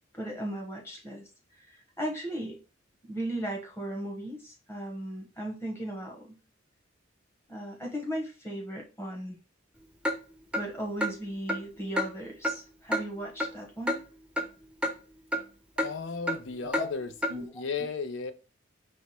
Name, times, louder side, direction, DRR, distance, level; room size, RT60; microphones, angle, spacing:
voice 1, 0.1-1.2 1.6-2.6 3.1-6.4 7.5-9.4 10.5-14.0 16.6-16.9 17.3-17.5, right 1 dB, 15° left, 0 dB, 1.0 m, -36 dB
Clock, 10.0-10.2 10.5-10.6 11.0-11.1 11.5-11.6 12.0-12.1 12.4-12.6 12.9-13.0 13.4-13.5 13.9-14.0 14.4-14.5 14.8-14.9 15.3-15.4 15.8-15.9 16.3-16.4 16.7-16.9 17.2-17.3, equal, 5° right, 0.4 m, -28 dB
voice 2, 15.8-17.1 17.5-18.3, left 5 dB, 65° left, 9 dB, 0.5 m, -34 dB
4.6 x 2.1 x 4.2 m, 0.33 s
head